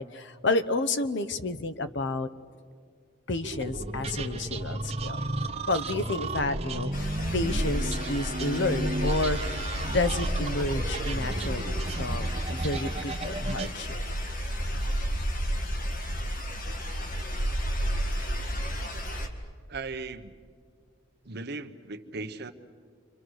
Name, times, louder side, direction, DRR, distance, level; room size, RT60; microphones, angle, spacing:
voice 1, 0.0-2.3 3.3-5.2 5.7-14.0, left 2 dB, 65° left, 12 dB, 0.9 m, -30 dB
sound 1, 3.4-13.7, right 2 dB, 35° right, 1.1 m, -33 dB
sound 2, 6.9-19.3, equal, 45° left, 1.9 m, -31 dB
voice 2, 19.7-20.3 21.2-22.5, right 3 dB, 60° right, 7 dB, 1.1 m, -37 dB
29.0 x 24.5 x 6.5 m, 2.1 s
head